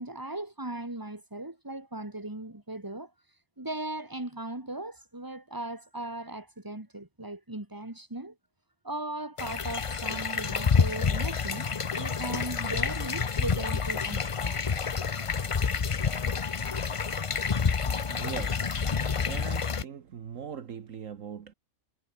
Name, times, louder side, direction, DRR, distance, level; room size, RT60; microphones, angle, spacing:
voice 1, 0.0-3.1 3.6-8.3 8.8-11.7 12.0-14.6 17.6-17.7 18.6-18.7, right 2 dB, 15° right, 2.8 m, -38 dB
sound 1, 9.4-19.8, left 5 dB, 40° left, 0.5 m, -28 dB
voice 2, 18.1-21.5, right 7 dB, 65° right, 1.5 m, -41 dB
omnidirectional pair, 1.5 m